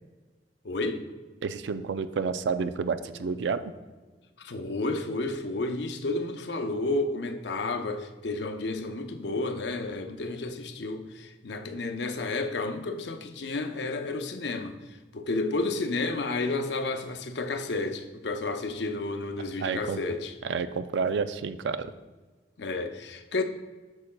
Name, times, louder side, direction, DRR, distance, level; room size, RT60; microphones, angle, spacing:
voice 1, 0.6-1.0 4.4-14.8 15.1-20.3 22.6-23.4, left 2 dB, 75° left, 6 dB, 0.6 m, -31 dB
voice 2, 1.4-3.7 19.6-20.0 20.4-21.9, right 5 dB, 90° right, 11 dB, 0.4 m, -30 dB
8.5 x 6.4 x 2.2 m, 1.3 s
head